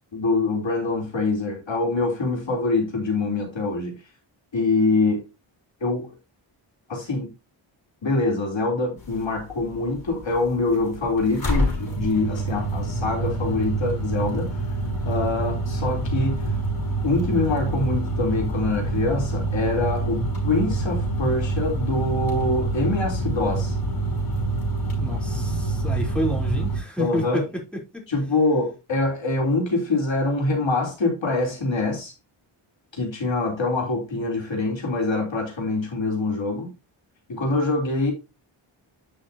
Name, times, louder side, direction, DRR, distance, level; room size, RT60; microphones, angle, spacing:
voice 1, 0.1-4.0 4.5-5.2 5.8-6.1 6.9-7.3 8.0-14.5 15.1-16.5 17.0-23.8 27.0-27.4 28.1-32.1 32.9-36.7 37.3-38.1, left 2 dB, 60° left, 3.6 m, -24 dB
sound 1, 9.0-26.8, right 2 dB, 45° left, 5.4 m, -27 dB
voice 2, 25.0-28.0, right 1 dB, ahead, 3.7 m, -29 dB
11.0 x 5.9 x 2.8 m
wide cardioid pair, 85°, 49 cm